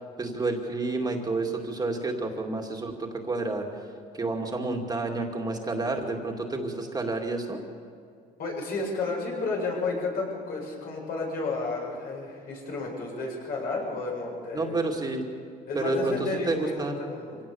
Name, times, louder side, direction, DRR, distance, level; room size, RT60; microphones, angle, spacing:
voice 1, 0.2-3.7 4.1-7.6 14.5-15.2 15.7-16.1 16.5-17.0, right 3 dB, 25° right, 1 dB, 2.5 m, -29 dB
voice 2, 8.4-14.8 15.7-17.4, left 3 dB, 60° left, -1 dB, 7.6 m, -32 dB
24.5 x 17.5 x 7.2 m, 2.4 s
cardioid pair, 110°, 17 cm